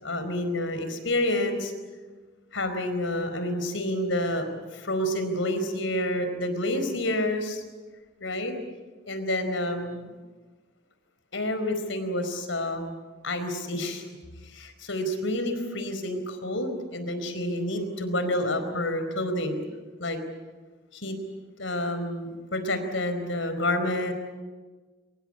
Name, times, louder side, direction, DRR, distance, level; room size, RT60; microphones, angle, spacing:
voice 1, 0.0-1.7 2.5-7.6 8.2-8.5 9.1-10.1 11.3-12.9 13.2-14.0 14.4-19.6 20.0-20.2 20.9-21.1 21.6-24.1, left 1 dB, 90° left, 8 dB, 4.5 m, -29 dB
25.0 x 22.5 x 8.8 m, 1.3 s
head